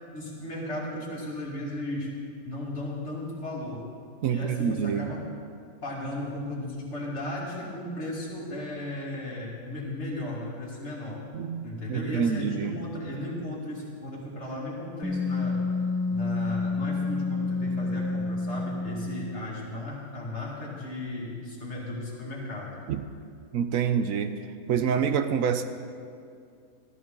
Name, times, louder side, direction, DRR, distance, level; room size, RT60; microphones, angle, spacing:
voice 1, 0.1-3.8 4.3-5.3 5.8-11.2 11.6-15.6 16.1-22.8, left 1 dB, 45° left, -4 dB, 2.7 m, -35 dB
voice 2, 4.2-5.1 11.3-12.8 22.9-23.0 23.5-24.4 24.7-25.6, right 7 dB, 70° right, 9 dB, 1.0 m, -27 dB
Wind instrument woodwind instrument, 15.0-19.4, left 3 dB, 10° left, 0.7 m, -29 dB
14.0 x 14.0 x 3.8 m, 2.3 s
omnidirectional pair, 1.6 m